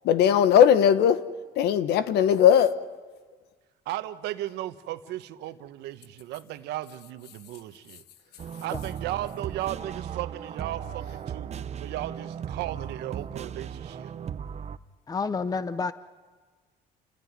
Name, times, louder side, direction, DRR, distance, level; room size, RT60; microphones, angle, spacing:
voice 1, 0.0-1.2 1.6-2.8, left 9 dB, 80° left, 1.3 m, -19 dB
voice 2, 3.8-8.0 8.6-11.5 11.8-14.1, right 14 dB, 85° right, 1.2 m, -35 dB
sound 1, 8.4-14.8, right 8 dB, 40° right, 0.8 m, -36 dB
voice 3, 15.1-15.9, left 4 dB, 20° left, 0.7 m, -29 dB
29.0 x 15.5 x 9.5 m
cardioid pair, 110°, 17 cm